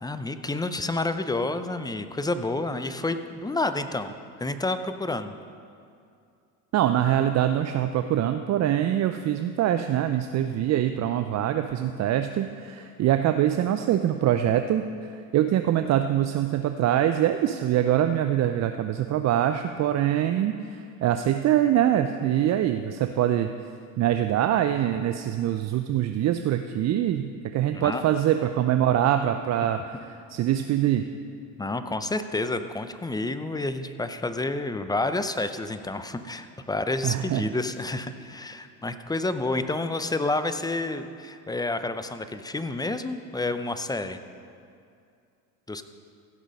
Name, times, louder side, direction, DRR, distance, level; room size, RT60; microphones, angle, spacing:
voice 1, 0.0-5.3 27.7-28.0 31.6-44.2 45.7-45.8, left 2 dB, 10° left, 10 dB, 0.5 m, -29 dB
voice 2, 6.7-23.5 24.0-31.1 37.0-37.5, right 11 dB, 40° right, 8 dB, 0.5 m, -24 dB
15.5 x 6.2 x 5.4 m, 2.4 s
hypercardioid pair, 80°, 44 cm